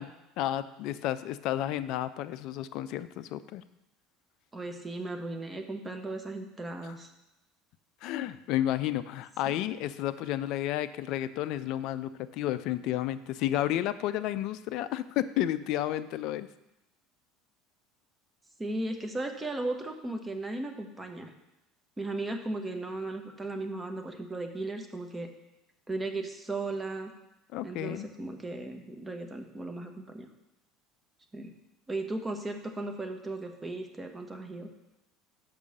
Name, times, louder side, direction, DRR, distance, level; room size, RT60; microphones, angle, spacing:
voice 1, 0.0-3.6 6.8-6.9 8.0-16.5 27.5-28.1, left 13 dB, 55° left, 14 dB, 0.4 m, -32 dB
voice 2, 4.5-7.1 9.5-9.6 18.6-21.3 22.0-25.3 25.9-27.1 27.6-30.3 31.3-31.5 31.9-34.7, right 2 dB, 20° right, 5 dB, 1.1 m, -36 dB
6.1 x 5.2 x 6.5 m, 0.92 s
figure-of-eight pair, 70°, 0 cm